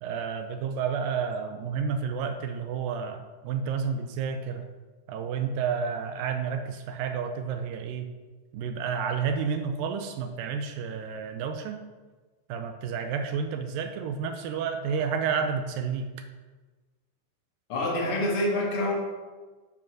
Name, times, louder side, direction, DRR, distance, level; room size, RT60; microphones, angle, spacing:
voice 1, 0.0-4.7 5.1-8.1 8.5-11.8 12.5-16.2, right 6 dB, 80° right, 6 dB, 2.2 m, -30 dB
voice 2, 17.7-18.9, left 1 dB, 45° left, -2 dB, 2.3 m, -26 dB
9.7 x 5.1 x 6.1 m, 1.3 s
omnidirectional pair, 4.3 m